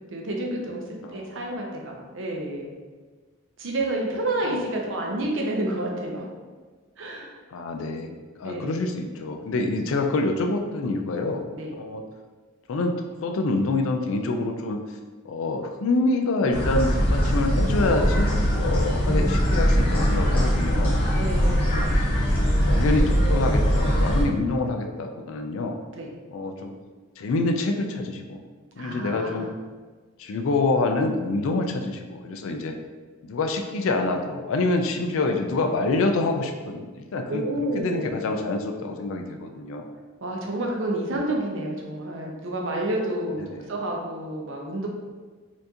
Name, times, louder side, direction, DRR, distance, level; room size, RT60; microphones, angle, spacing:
voice 1, 0.1-2.7 3.6-6.3 7.0-7.3 8.4-8.8 11.5-11.7 18.4-19.5 21.1-22.0 25.9-26.1 28.8-29.5 37.3-38.2 40.2-43.4 43.7-44.9, right 1 dB, 60° right, 0 dB, 0.6 m, -30 dB
voice 2, 1.0-1.4 7.5-11.5 11.8-12.0 12.7-13.0 13.2-14.8 15.2-21.0 21.8-21.9 22.6-25.8 26.3-26.7 27.2-28.4 28.8-29.5 30.2-32.7 33.2-39.9 43.4-43.7, left 2 dB, 65° left, 4 dB, 0.4 m, -26 dB
sound 1, 16.5-24.2, equal, 25° left, 1.1 m, -21 dB
4.4 x 2.6 x 2.8 m, 1.4 s
head